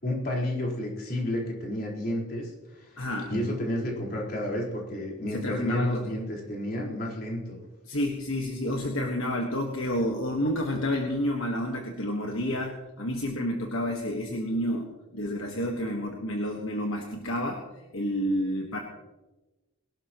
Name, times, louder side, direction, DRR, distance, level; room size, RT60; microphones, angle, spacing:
voice 1, 0.0-7.6, left 1 dB, 45° left, -3 dB, 4.5 m, -31 dB
voice 2, 3.0-3.3 5.3-6.1 7.8-17.6 17.9-18.8, equal, 65° left, 1 dB, 1.6 m, -30 dB
22.5 x 12.5 x 3.1 m, 1.1 s
head